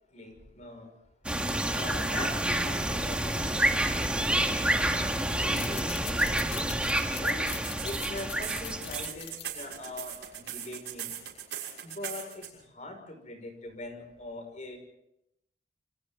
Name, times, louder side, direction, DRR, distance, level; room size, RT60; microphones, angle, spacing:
voice 1, 0.1-0.9 1.7-4.0 4.4-5.0 5.4-6.8 7.2-7.5 7.8-11.2 11.8-14.8, left 2 dB, 40° left, 6 dB, 5.9 m, -42 dB
sound 1, 1.2-9.1, right 1 dB, 5° right, 1.9 m, -28 dB
sound 2, 5.5-10.6, left 11 dB, 75° left, 2.0 m, -43 dB
sound 3, 7.5-12.5, right 10 dB, 75° right, 6.4 m, -39 dB
28.5 x 25.5 x 3.9 m, 0.82 s
head